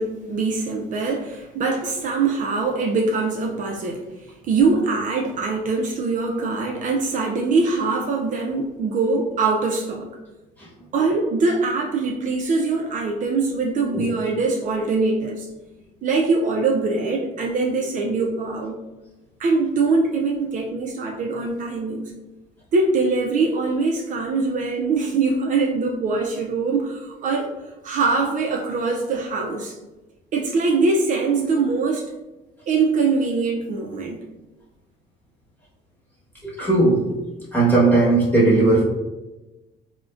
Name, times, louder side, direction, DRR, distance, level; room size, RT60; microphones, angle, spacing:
voice 1, 0.0-4.0 4.5-10.1 10.9-15.5 16.0-18.8 19.4-22.0 22.7-27.5 27.8-29.8 30.3-32.1 32.7-34.2, right 3 dB, 50° right, 0 dB, 0.4 m, -23 dB
voice 2, 36.4-37.1 37.5-38.8, right 2 dB, 10° left, -7 dB, 1.1 m, -17 dB
3.6 x 2.1 x 2.4 m, 1.1 s
cardioid pair, 110°, 17 cm